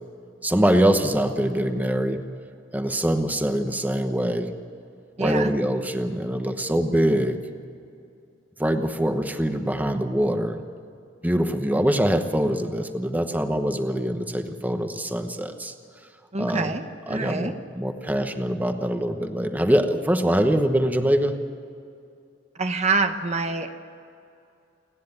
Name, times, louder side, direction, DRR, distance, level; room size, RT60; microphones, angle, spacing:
voice 1, 0.4-2.2 2.7-4.5 5.2-7.4 8.6-10.6 11.2-15.7 16.4-16.7 17.1-21.4, equal, 10° right, 7 dB, 1.0 m, -23 dB
voice 2, 5.2-5.5 16.3-17.5 22.6-23.7, right 3 dB, 35° right, 7 dB, 1.0 m, -26 dB
29.0 x 10.5 x 9.7 m, 2.5 s
head